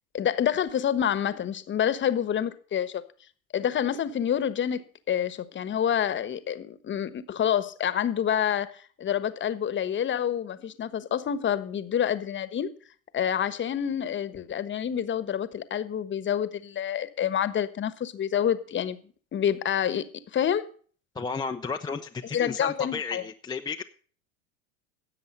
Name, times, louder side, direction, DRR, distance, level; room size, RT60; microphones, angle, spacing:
voice 1, 0.1-3.0 3.5-12.7 13.1-19.0 19.3-20.1 20.3-20.7 22.3-23.2, left 9 dB, 25° left, 1.2 m, -27 dB
voice 2, 21.1-23.8, left 5 dB, 10° left, 0.6 m, -33 dB
17.0 x 7.7 x 5.5 m
hypercardioid pair, 90°, 42 cm